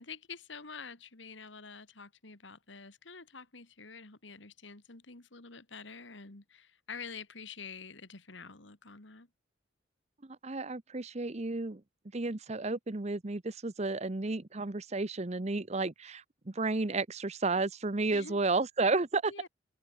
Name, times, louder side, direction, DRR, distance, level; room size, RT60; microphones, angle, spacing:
voice 1, 0.0-9.3 18.1-18.4 19.3-19.5, left 5 dB, 70° left, 2.3 m, -47 dB
voice 2, 10.4-11.8 12.1-19.5, right 3 dB, 35° right, 0.8 m, -32 dB
head